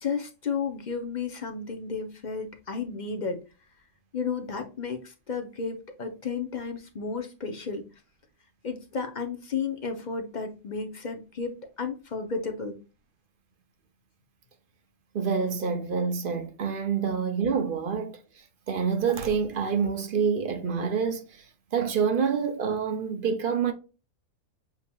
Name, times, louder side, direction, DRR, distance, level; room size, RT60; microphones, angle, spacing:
voice 1, 0.0-3.4 4.1-7.9 8.6-12.8, left 5 dB, 45° left, 0.6 m, -33 dB
voice 2, 15.1-18.2 18.7-21.4 21.7-23.7, right 6 dB, 55° right, 0.6 m, -27 dB
7.3 x 2.8 x 2.3 m
omnidirectional pair, 1.4 m